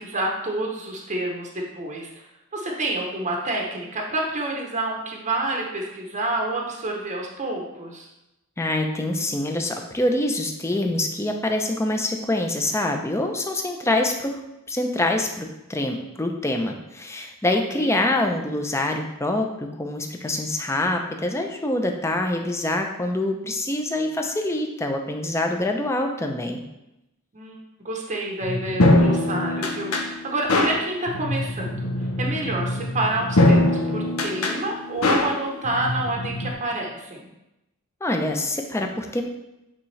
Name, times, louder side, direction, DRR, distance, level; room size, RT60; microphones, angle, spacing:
voice 1, 0.0-2.1 2.5-8.1 17.5-17.9 27.3-27.6 27.8-31.9 32.2-37.3, right 2 dB, 35° right, 0 dB, 0.8 m, -28 dB
voice 2, 8.6-14.4 14.7-26.6 38.0-39.2, left 1 dB, 15° left, 3 dB, 0.6 m, -25 dB
sound 1, 28.4-36.5, left 1 dB, 90° left, 0.8 m, -23 dB
8.6 x 3.7 x 3.2 m, 0.92 s
head